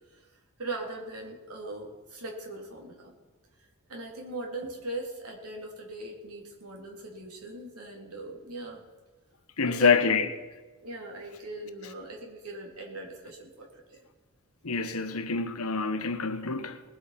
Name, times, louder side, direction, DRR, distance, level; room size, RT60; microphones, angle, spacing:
voice 1, 0.6-3.1 3.9-8.8 9.6-10.3 10.8-14.0, right 2 dB, 80° right, 3.4 m, -39 dB
voice 2, 9.6-10.3 14.6-16.8, left 5 dB, 75° left, 1.2 m, -26 dB
20.0 x 8.2 x 5.9 m
head